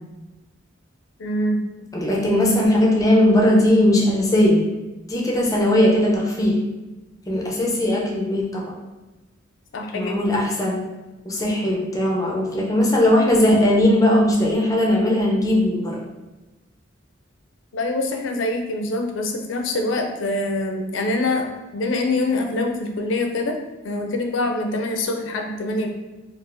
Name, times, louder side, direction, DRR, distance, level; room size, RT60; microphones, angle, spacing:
voice 1, 1.2-1.6 9.7-10.2 17.7-23.6 23.8-25.9, left 2 dB, 70° left, 2 dB, 0.5 m, -24 dB
voice 2, 1.9-4.7 5.1-6.6 7.3-8.7 9.9-10.8 11.2-16.0, left 1 dB, 20° left, -2 dB, 0.6 m, -19 dB
3.8 x 2.5 x 2.5 m, 1.1 s
head